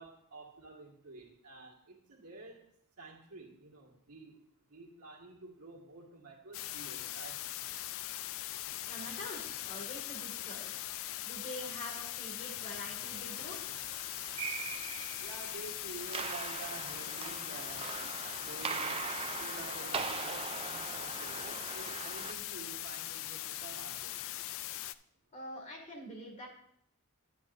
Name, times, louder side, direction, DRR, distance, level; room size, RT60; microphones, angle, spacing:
voice 1, 0.0-2.6 3.0-4.4 4.7-7.6 15.2-19.0 19.4-24.1, right 3 dB, 90° right, -1 dB, 1.8 m, -50 dB
sound 1, 6.5-24.9, left 14 dB, 60° left, 0.3 m, -41 dB
voice 2, 8.9-10.9 11.2-13.6 25.3-26.5, equal, 35° left, 0 dB, 2.2 m, -45 dB
sound 2, 13.1-22.3, right 5 dB, 25° right, 0.4 m, -41 dB
10.0 x 9.2 x 2.6 m, 0.68 s
head